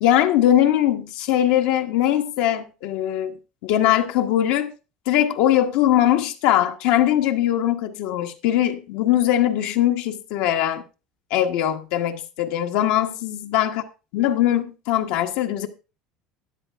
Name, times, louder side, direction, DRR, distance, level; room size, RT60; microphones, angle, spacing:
voice 1, 0.0-3.3 3.6-4.7 5.1-10.8 11.3-13.8 14.1-15.7, left 12 dB, 75° left, 1.2 m, -21 dB
13.0 x 10.0 x 3.5 m
cardioid pair, 145°, 3 cm